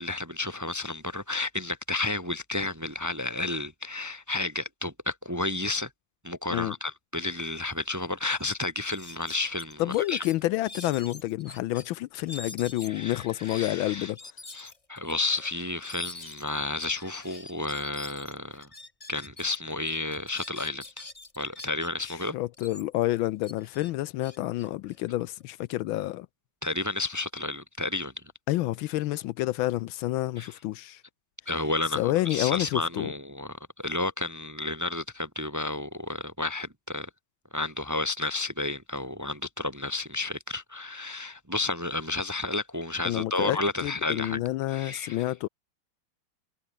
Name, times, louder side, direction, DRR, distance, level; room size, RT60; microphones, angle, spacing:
voice 1, 0.0-5.9 6.2-10.2 12.8-14.1 14.5-18.7 19.1-21.0 21.4-22.3 26.6-28.1 30.4-30.5 31.5-37.1 37.5-44.4 44.7-45.3, left 3 dB, 10° right, 1.1 m, -31 dB
sound 1, 7.9-8.0 8.3-8.5 8.9-11.8 12.3-19.6 19.9-22.2 22.5-25.4, left 2 dB, 15° left, 1.7 m, -45 dB
voice 2, 9.8-14.2 22.3-26.3 28.5-31.0 31.9-33.1 43.0-45.5, left 16 dB, 80° left, 1.3 m, -29 dB
omnidirectional pair, 2.3 m